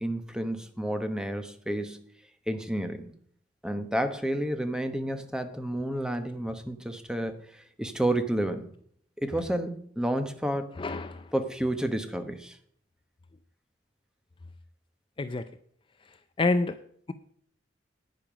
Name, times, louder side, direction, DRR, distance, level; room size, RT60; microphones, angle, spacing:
voice 1, 0.0-2.0 2.5-3.1 3.6-8.7 9.2-10.7 11.3-12.6, right 1 dB, 5° right, 8 dB, 1.0 m, -30 dB
voice 2, 10.8-11.3 15.2-15.4 16.4-16.7, left 3 dB, 25° left, 11 dB, 0.4 m, -27 dB
10.5 x 9.1 x 5.0 m, 0.63 s
head